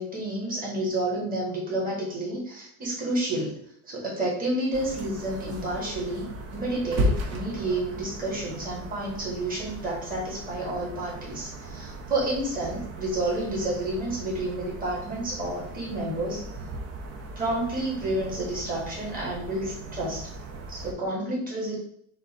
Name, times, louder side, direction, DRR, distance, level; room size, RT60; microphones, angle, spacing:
voice 1, 0.0-3.6 3.8-16.4 17.4-20.3 20.7-21.8, right 1 dB, 20° right, -5 dB, 1.9 m, -30 dB
sound 1, 4.7-20.9, right 1 dB, 40° right, 0.7 m, -36 dB
4.2 x 2.6 x 4.3 m, 0.67 s
cardioid pair, 140°, 40 cm